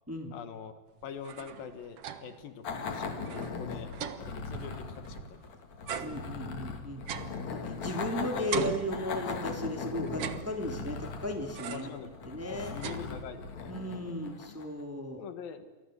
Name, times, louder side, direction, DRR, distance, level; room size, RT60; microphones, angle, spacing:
voice 1, 0.3-3.9 4.2-5.4 5.9-6.5 7.6-7.7 8.1-8.5 11.7-12.1 12.5-13.8 14.5-14.6 15.2-15.7, left 7 dB, 70° left, 10 dB, 3.1 m, -44 dB
sound 1, 1.0-2.5 2.8-2.9 3.2-5.4 5.9-8.1 8.5-9.6 10.1-11.0 11.5-12.1 12.4-13.6, right 8 dB, 55° right, 1.8 m, -40 dB
sound 2, 2.6-14.8, left 5 dB, 50° left, 3.4 m, -39 dB
voice 2, 6.0-7.1 7.5-12.7 13.7-15.2, left 1 dB, 5° right, 4 dB, 2.6 m, -36 dB
30.0 x 24.0 x 8.0 m, 1.2 s
omnidirectional pair, 4.4 m